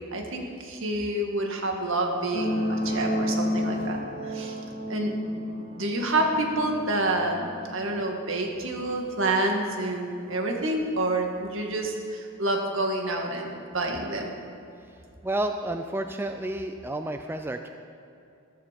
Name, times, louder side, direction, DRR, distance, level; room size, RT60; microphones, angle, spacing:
voice 1, 0.1-4.0 4.3-4.6 4.9-5.4 5.8-14.3, right 2 dB, 65° right, 2 dB, 2.0 m, -28 dB
sound 1, 2.3-9.4 10.2-10.3, equal, 60° left, 2.6 m, -32 dB
voice 2, 15.2-17.7, right 1 dB, 10° right, 6 dB, 0.4 m, -30 dB
14.0 x 13.5 x 5.2 m, 2.7 s
head